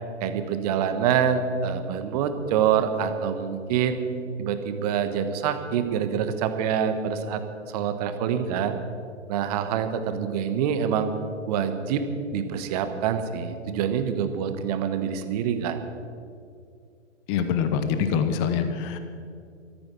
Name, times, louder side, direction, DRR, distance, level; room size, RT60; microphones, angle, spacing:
voice 1, 0.2-4.0 4.4-7.4 7.7-8.7 9.3-11.1 11.5-12.0 12.3-15.8, right 8 dB, 30° right, 9 dB, 1.2 m, -26 dB
voice 2, 17.3-19.0, left 7 dB, 20° left, 9 dB, 0.9 m, -25 dB
14.0 x 13.5 x 6.1 m, 2.3 s
figure-of-eight pair, 125°, 39 cm